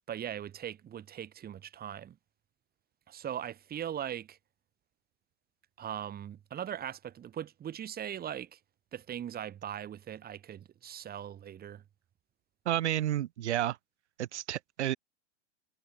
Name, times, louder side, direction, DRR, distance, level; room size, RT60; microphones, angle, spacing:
voice 1, 0.1-2.2 3.1-4.4 5.8-8.6 8.9-11.8, right 10 dB, 25° right, 3.6 m, -40 dB
voice 2, 12.6-13.8 14.2-15.0, right 12 dB, 70° right, 1.3 m, -31 dB
hypercardioid pair, 105°, 35 cm